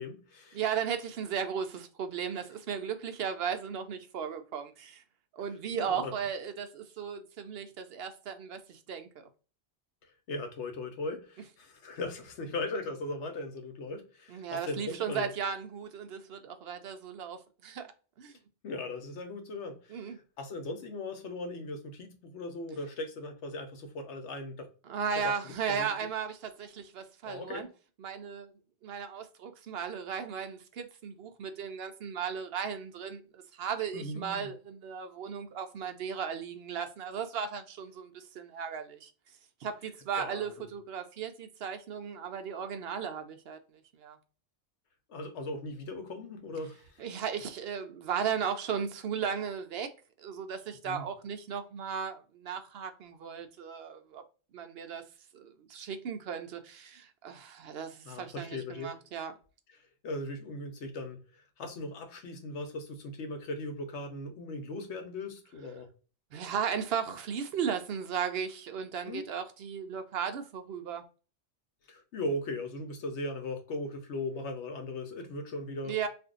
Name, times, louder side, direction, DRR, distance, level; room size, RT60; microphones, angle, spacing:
voice 1, 0.0-0.6 5.7-6.1 10.3-15.3 18.6-24.7 25.2-25.9 27.2-27.7 33.9-34.5 40.1-40.5 45.1-47.0 50.8-51.1 58.1-58.9 60.0-65.9 69.0-69.2 71.9-76.1, left 2 dB, 80° left, 1.1 m, -38 dB
voice 2, 0.5-5.0 5.3-9.1 14.3-17.9 18.2-18.4 19.9-20.2 24.8-27.7 28.0-28.5 28.8-39.1 39.6-43.6 44.0-44.2 47.0-49.9 50.2-54.2 54.5-55.0 55.3-59.3 66.3-71.0 75.8-76.1, right 7 dB, 65° right, 0.7 m, -36 dB
2.6 x 2.5 x 3.6 m
omnidirectional pair, 1.1 m